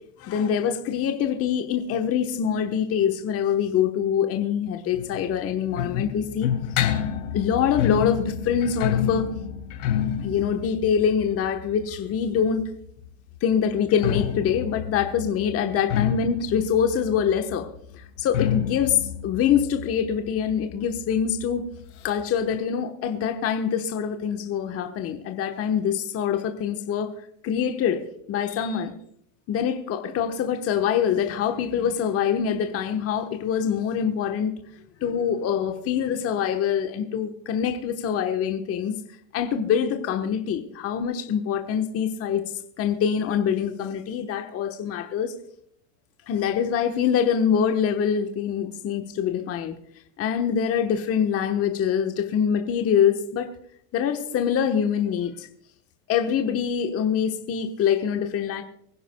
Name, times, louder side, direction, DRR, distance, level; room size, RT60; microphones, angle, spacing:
voice 1, 0.2-6.5 7.3-9.3 10.2-12.7 13.4-17.7 17.9-21.6 22.0-27.1 27.4-28.0 28.3-28.9 29.5-34.5 35.0-39.0 39.3-42.4 42.8-45.3 46.3-49.8 50.2-53.5 53.9-55.5 56.1-58.6, left 8 dB, 30° left, 5 dB, 1.1 m, -24 dB
sound 1, 4.9-12.6 13.8-21.1 21.4-21.5 21.7-21.8 22.5-22.6, left 9 dB, 70° left, 3.4 m, -28 dB
24.5 x 11.0 x 2.2 m, 0.70 s
supercardioid pair, 120°, 46 cm